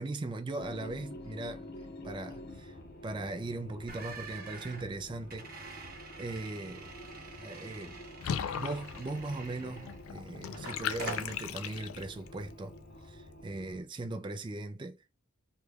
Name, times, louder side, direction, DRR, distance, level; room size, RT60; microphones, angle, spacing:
voice 1, 0.0-1.7 2.0-2.8 3.0-5.5 6.2-6.9 7.4-8.0 8.5-12.7 13.0-15.0, right 2 dB, 25° right, 0.3 m, -39 dB
sound 1, 0.6-13.8, left 1 dB, 50° left, 0.7 m, -49 dB
sound 2, 3.9-10.1 10.5-11.4, right 4 dB, 45° right, 0.9 m, -46 dB
Water / Bathtub (filling or washing), 8.2-12.3, left 8 dB, 80° left, 0.3 m, -38 dB
3.2 x 2.3 x 3.3 m
head